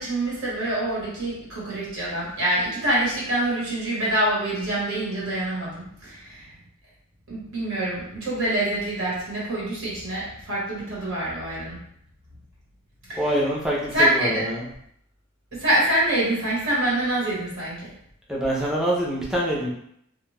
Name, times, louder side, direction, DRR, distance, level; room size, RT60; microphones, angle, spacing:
voice 1, 0.0-6.5 7.3-11.8 13.1-13.3 13.9-14.4 15.5-17.9, right 1 dB, 65° right, -7 dB, 1.3 m, -25 dB
voice 2, 13.2-14.6 18.3-19.7, right 1 dB, 5° right, -5 dB, 0.5 m, -25 dB
2.5 x 2.3 x 3.2 m, 0.71 s
head